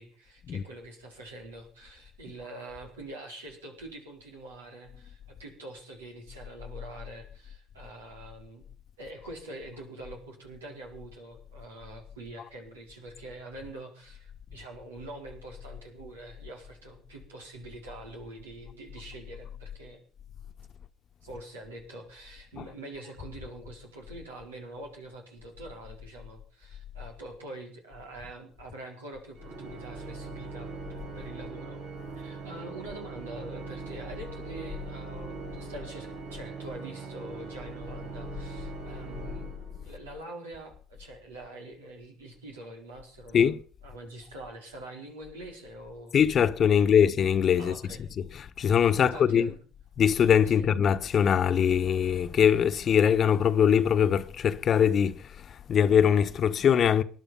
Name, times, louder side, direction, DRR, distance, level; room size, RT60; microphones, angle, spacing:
voice 1, 0.0-8.7 9.0-20.0 21.2-31.8 32.2-39.5 39.8-43.5 43.8-46.1 46.7-47.0 47.6-48.0 49.0-49.6 50.6-50.7, right 2 dB, 90° right, 4.5 m, -45 dB
Organ, 29.4-40.1, right 3 dB, 70° right, 4.1 m, -41 dB
voice 2, 46.1-49.5 50.0-57.0, left 8 dB, 50° left, 1.2 m, -23 dB
19.5 x 11.0 x 5.7 m
hypercardioid pair, 60°, 0 cm